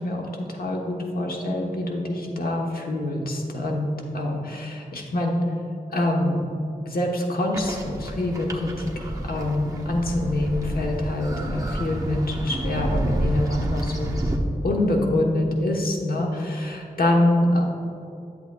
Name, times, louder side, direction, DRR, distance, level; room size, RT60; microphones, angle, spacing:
voice 1, 0.0-5.4 5.9-6.4 6.9-14.1 14.6-17.6, left 1 dB, 80° left, 0 dB, 1.1 m, -25 dB
sound 1, 7.5-14.4, right 1 dB, 20° right, 1.0 m, -29 dB
11.0 x 7.9 x 2.3 m, 2.8 s
wide cardioid pair, 65°, 15 cm